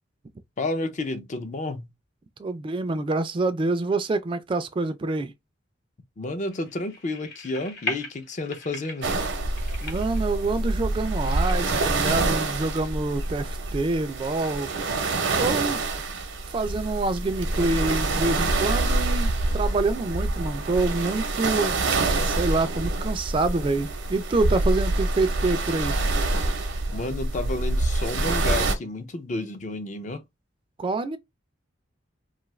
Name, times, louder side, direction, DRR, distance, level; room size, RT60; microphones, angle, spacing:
voice 1, 0.6-1.9 6.2-9.1 26.9-30.2, left 2 dB, 40° left, 0.5 m, -31 dB
voice 2, 2.4-5.3 9.8-14.7 15.3-15.8 16.5-21.8 22.2-26.0 30.8-31.2, right 3 dB, 25° right, 0.3 m, -26 dB
sound 1, 6.5-12.1, left 3 dB, 60° left, 1.0 m, -39 dB
sound 2, 9.0-28.7, right 2 dB, 85° right, 0.6 m, -26 dB
sound 3, 16.6-17.7 18.4-19.5 20.1-21.2, left 2 dB, 90° left, 0.9 m, -42 dB
2.5 x 2.4 x 3.1 m
head